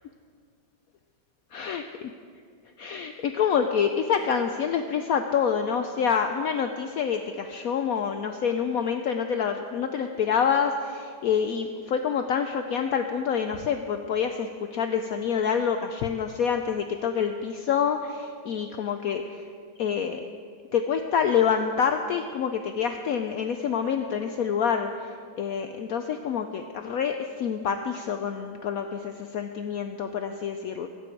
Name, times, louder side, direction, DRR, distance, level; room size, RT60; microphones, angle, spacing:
voice 1, 1.5-1.8 2.8-19.4 19.8-20.3 20.7-30.9, left 7 dB, 80° left, 6 dB, 0.8 m, -27 dB
24.0 x 8.7 x 4.5 m, 2.1 s
omnidirectional pair, 2.2 m